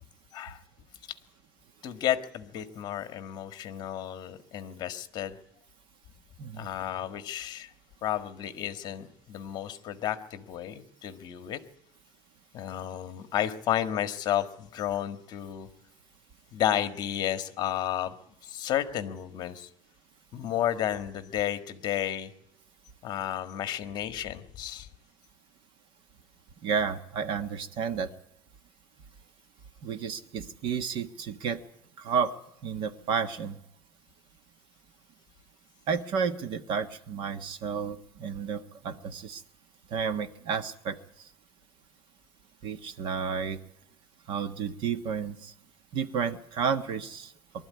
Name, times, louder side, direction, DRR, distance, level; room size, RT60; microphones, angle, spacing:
voice 1, 1.8-5.4 6.5-7.7 8.0-11.6 12.5-15.7 16.5-18.1 18.4-19.7 20.3-22.3 23.0-24.9, left 11 dB, 35° left, 10 dB, 1.6 m, -32 dB
voice 2, 26.6-28.1 29.8-31.6 32.0-32.3 32.6-33.6 35.9-39.4 39.9-41.0 42.6-43.6 44.3-45.5 45.9-47.3, right 6 dB, 45° right, 11 dB, 1.4 m, -31 dB
23.5 x 12.5 x 9.6 m, 0.79 s
cardioid pair, 160°, 12 cm